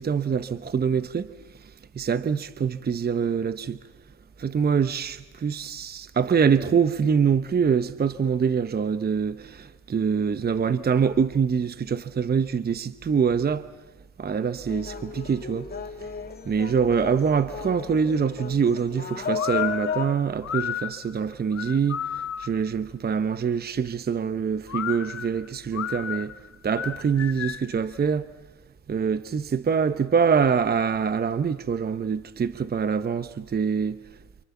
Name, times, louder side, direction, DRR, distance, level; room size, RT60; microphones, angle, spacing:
voice 1, 0.0-3.8 4.4-13.7 14.2-15.7 16.0-16.1 16.4-26.3 26.6-28.3 28.9-34.2, right 6 dB, 30° right, 0.8 m, -25 dB
sound 1, 14.7-20.1, left 6 dB, 30° left, 2.7 m, -34 dB
sound 2, 19.4-22.7 24.7-27.8, left 10 dB, 55° left, 0.9 m, -33 dB
29.0 x 27.5 x 7.2 m
cardioid pair, 90°, 30 cm